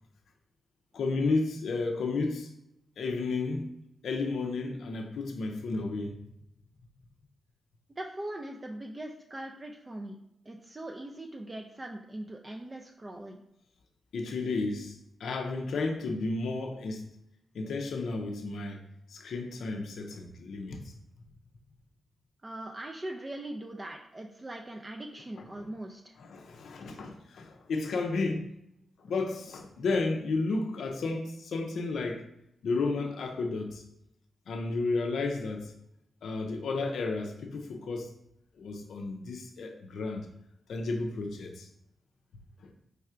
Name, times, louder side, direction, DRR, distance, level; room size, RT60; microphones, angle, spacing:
voice 1, 0.9-2.5 3.0-3.7 4.0-6.2 14.1-17.0 17.5-18.8 19.1-20.9 25.4-25.7 26.2-28.5 29.0-32.2 32.6-33.8 34.5-35.7 36.2-38.1 38.6-40.3 40.7-41.7 42.6-42.7, left 3 dB, 80° left, 0.4 m, -32 dB
voice 2, 8.0-10.2 10.5-13.4 22.4-26.1, right 1 dB, 30° right, 0.4 m, -41 dB
4.3 x 3.3 x 2.4 m
cardioid pair, 65°, 0 cm